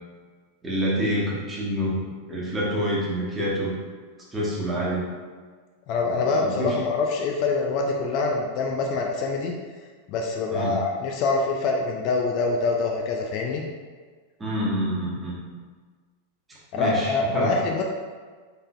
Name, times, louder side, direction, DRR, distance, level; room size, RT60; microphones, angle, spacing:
voice 1, 0.6-3.7 4.3-5.1 6.0-6.8 10.5-10.8 14.4-15.4 16.7-17.6, equal, 15° right, -6 dB, 1.3 m, -27 dB
voice 2, 5.9-9.5 10.1-13.6 16.7-17.8, left 3 dB, 40° left, 1 dB, 0.4 m, -25 dB
4.0 x 3.8 x 2.5 m, 1.5 s
figure-of-eight pair, 90°, 0 cm